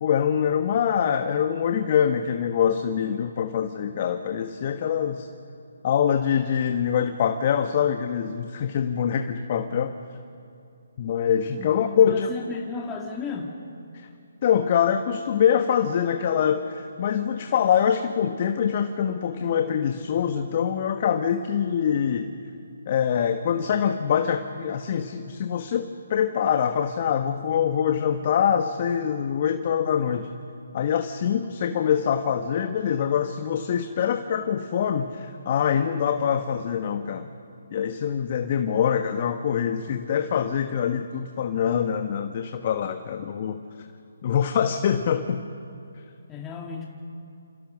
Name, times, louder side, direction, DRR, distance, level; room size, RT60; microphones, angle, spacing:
voice 1, 0.0-5.3 5.8-10.0 11.0-12.3 13.9-14.1 14.4-22.3 22.9-30.3 30.7-37.3 37.7-43.6 44.2-45.4, left 8 dB, 40° left, 7 dB, 1.3 m, -24 dB
voice 2, 11.9-13.5 46.3-46.9, left 4 dB, 15° left, 0 dB, 2.1 m, -34 dB
28.0 x 27.0 x 6.5 m, 2.6 s
figure-of-eight pair, 145°, 0 cm